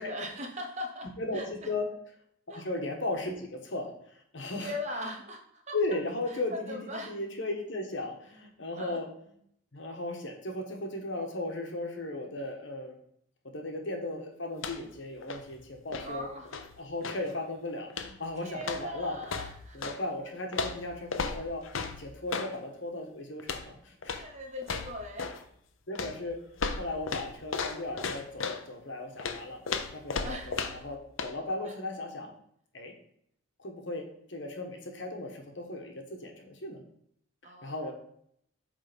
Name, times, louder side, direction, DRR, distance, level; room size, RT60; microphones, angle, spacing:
voice 1, 0.0-1.7 2.5-2.7 4.6-5.8 6.3-7.1 8.8-9.0 16.0-16.5 18.4-20.0 24.2-25.3 30.2-30.6 31.6-31.8 37.4-37.9, left 1 dB, 35° right, 2 dB, 1.1 m, -40 dB
voice 2, 1.2-1.9 2.5-4.7 5.7-9.1 9.7-13.0 13.4-16.3 16.8-19.2 19.7-21.6 22.0-24.2 25.9-26.4 26.7-29.6 29.9-32.3 32.7-32.9 33.6-36.8 37.6-37.9, left 2 dB, 60° left, 3 dB, 1.3 m, -36 dB
sound 1, 14.5-15.0 15.2-17.3 17.9-18.3 18.6-20.0 20.5-22.5 23.4-23.7 24.0-24.3 24.6-25.4 26.0-28.6 29.2-30.9 31.2-31.3, left 5 dB, 75° left, 0.7 m, -36 dB
8.4 x 3.7 x 5.2 m, 0.68 s
head